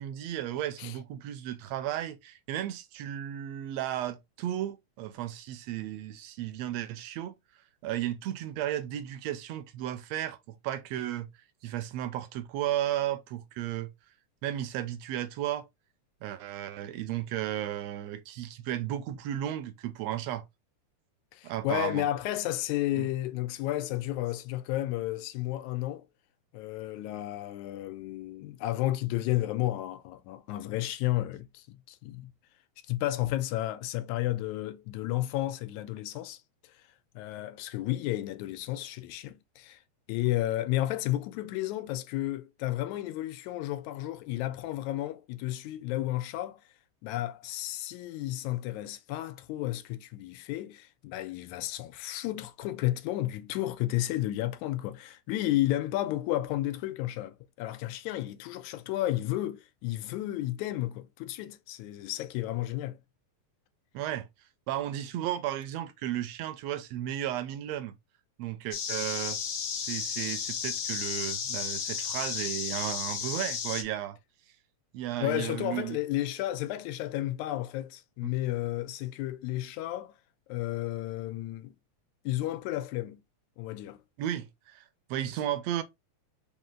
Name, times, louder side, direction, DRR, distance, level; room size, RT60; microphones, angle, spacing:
voice 1, 0.0-7.3 7.8-11.3 11.6-13.9 14.4-15.6 16.2-20.4 21.4-22.1 23.0-23.1 63.9-64.3 64.7-68.0 68.4-69.4 69.7-74.2 74.9-76.0 78.2-78.3 84.2-85.8, right 12 dB, 80° right, 1.5 m, -34 dB
voice 2, 21.3-26.1 26.5-32.3 32.9-36.4 36.6-36.7 37.2-39.8 40.1-46.6 47.0-63.0 75.2-80.1 80.5-81.8 82.3-83.2 83.6-84.0, left 15 dB, 90° left, 2.0 m, -32 dB
sound 1, 68.7-73.8, left 7 dB, 65° left, 2.0 m, -33 dB
5.2 x 2.8 x 3.7 m
omnidirectional pair, 3.3 m